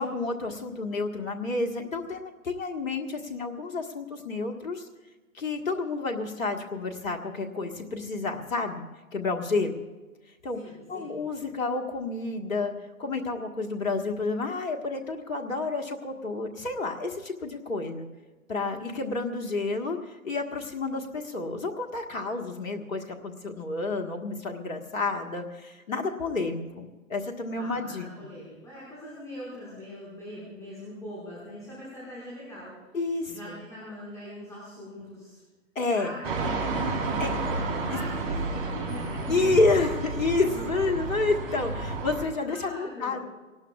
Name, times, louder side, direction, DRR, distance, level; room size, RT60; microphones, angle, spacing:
voice 1, 0.0-4.9 5.3-8.9 9.1-9.8 10.4-10.6 10.9-12.7 13.0-18.1 18.5-28.0 32.9-33.6 35.8-36.1 37.2-37.4 37.9-38.0 39.3-43.2, left 3 dB, 75° left, 3 dB, 1.8 m, -30 dB
voice 2, 10.5-11.2 27.6-32.7 33.3-35.4 35.9-39.5 42.4-43.2, equal, 5° left, -7 dB, 5.6 m, -42 dB
sound 1, 36.2-42.2, right 3 dB, 40° right, 3.5 m, -31 dB
23.5 x 19.0 x 2.5 m, 1.3 s
hypercardioid pair, 130°, 40 cm